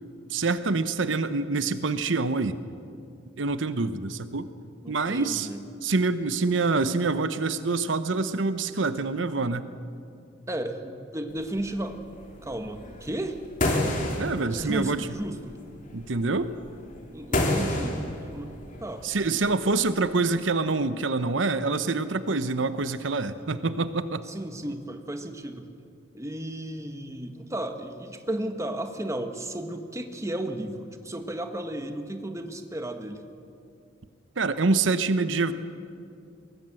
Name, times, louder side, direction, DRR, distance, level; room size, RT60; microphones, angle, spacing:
voice 1, 0.3-2.6 3.4-4.5 4.9-5.5 5.8-9.6 14.2-15.1 15.9-16.5 19.0-24.2 34.4-35.5, right 3 dB, 80° right, 12 dB, 0.9 m, -26 dB
voice 2, 4.8-5.6 10.5-12.0 12.4-13.4 14.5-15.6 17.1-18.5 18.8-19.8 24.2-25.7 26.1-33.2, right 1 dB, 15° right, 6 dB, 1.4 m, -34 dB
sound 1, 11.3-20.1, left 1 dB, 45° left, 3.2 m, -32 dB
22.5 x 19.0 x 7.8 m, 2.4 s
head